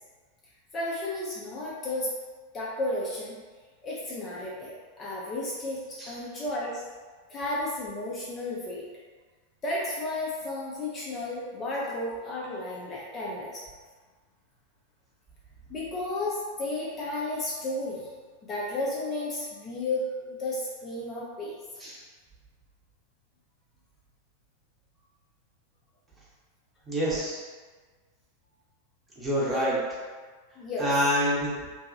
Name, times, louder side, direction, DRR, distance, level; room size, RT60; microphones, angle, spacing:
voice 1, 0.7-2.1 2.5-3.3 3.8-6.8 7.3-8.8 9.6-13.6 15.7-18.1 18.5-21.5 29.5-29.8 30.6-31.0, left 1 dB, 25° left, -6 dB, 0.5 m, -33 dB
voice 2, 26.9-27.4 29.2-29.8 30.8-31.5, equal, 15° right, -7 dB, 0.8 m, -26 dB
2.7 x 2.2 x 2.5 m, 1.4 s
figure-of-eight pair, 90°, 0 cm